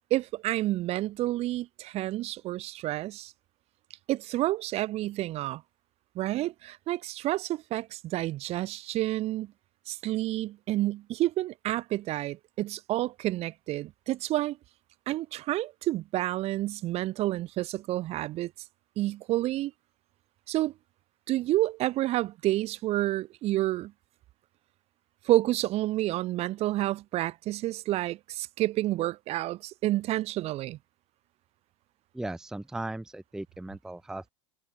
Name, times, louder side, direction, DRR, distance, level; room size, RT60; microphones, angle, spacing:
voice 1, 0.1-3.3 4.1-5.6 6.1-9.5 9.9-14.6 15.1-18.5 19.0-19.7 20.5-20.7 21.3-23.9 25.2-30.8, right 16 dB, 45° right, 1.1 m, -29 dB
voice 2, 32.1-34.3, right 2 dB, 5° right, 0.6 m, -37 dB
hypercardioid pair, 95°, 15 cm